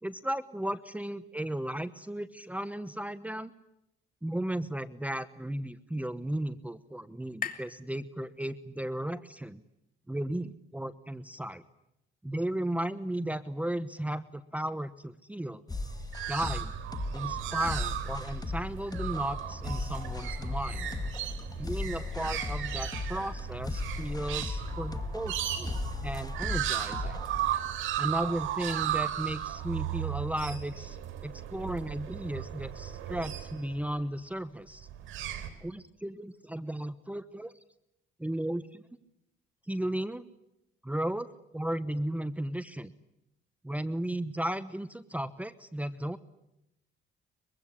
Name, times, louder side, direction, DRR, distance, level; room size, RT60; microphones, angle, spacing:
voice 1, 0.0-3.5 4.2-9.6 10.1-11.6 12.2-15.6 16.3-16.7 17.1-20.9 21.5-27.2 28.0-31.0 31.2-34.9 35.6-37.6 38.2-38.8 39.7-40.3 40.8-41.3 41.5-42.9 43.6-46.2, right 1 dB, 5° right, 14 dB, 1.0 m, -35 dB
sound 1, 5.1-8.8, left 7 dB, 45° left, 2.8 m, -45 dB
sound 2, 15.7-27.6, left 3 dB, 20° left, 2.3 m, -37 dB
sound 3, 15.7-33.9 34.8-35.5, right 11 dB, 90° right, 3.6 m, -36 dB
23.5 x 23.5 x 10.0 m, 0.84 s
cardioid pair, 90°, 20 cm